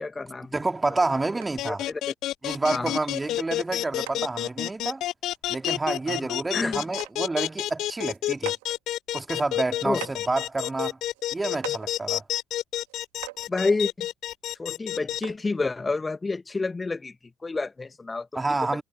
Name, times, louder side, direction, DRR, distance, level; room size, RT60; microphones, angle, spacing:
voice 1, 0.0-0.6 1.6-2.1 2.7-2.9 6.1-6.8 9.8-10.0 13.5-14.1 14.5-17.1 17.4-18.3, left 3 dB, 25° left, 1.6 m, -29 dB
voice 2, 0.5-1.8 2.4-5.1 5.5-8.5 9.1-11.0 11.3-12.2 18.3-18.8, right 3 dB, 20° right, 2.9 m, -28 dB
sound 1, 1.4-1.7 2.3-2.4 2.7-3.1 3.6-3.7 4.1-4.2 5.3-5.4 5.7-5.9 6.4-6.5 6.9-7.1 7.5-8.8 9.4-9.5 10.0-10.4 11.1-11.2 11.6-11.9 12.9-13.0 13.2-13.5 14.5-14.6 15.2-15.5 16.4-16.5, right 25 dB, 70° right, 2.1 m, -41 dB
sound 2, 1.6-15.2, left 14 dB, 60° left, 0.4 m, -29 dB
figure-of-eight pair, 45°, 0 cm